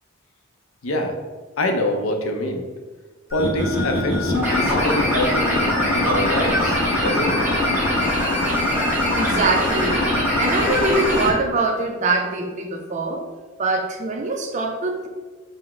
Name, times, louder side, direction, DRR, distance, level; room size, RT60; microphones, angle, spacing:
voice 1, 0.8-1.1 1.6-2.6 3.3-7.5, left 1 dB, 75° left, 3 dB, 0.5 m, -25 dB
sound 1, 3.3-11.3, left 1 dB, 10° right, 1.3 m, -21 dB
voice 2, 9.1-10.1 10.4-13.2 13.6-15.1, right 3 dB, 35° right, 3 dB, 0.4 m, -23 dB
4.7 x 2.0 x 3.5 m, 1.3 s
head